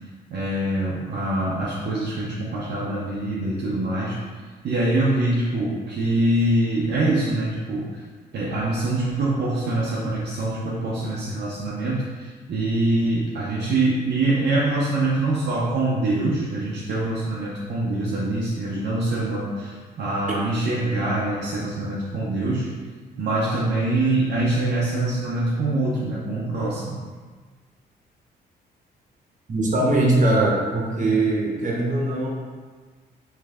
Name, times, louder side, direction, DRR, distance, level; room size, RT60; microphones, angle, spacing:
voice 1, 0.3-4.2 4.6-8.0 8.3-22.7 23.2-27.0, right 2 dB, 60° right, -6 dB, 0.7 m, -24 dB
voice 2, 29.5-32.3, right 2 dB, 40° right, -3 dB, 1.1 m, -21 dB
3.3 x 3.2 x 3.5 m, 1.5 s
supercardioid pair, 65°, 19 cm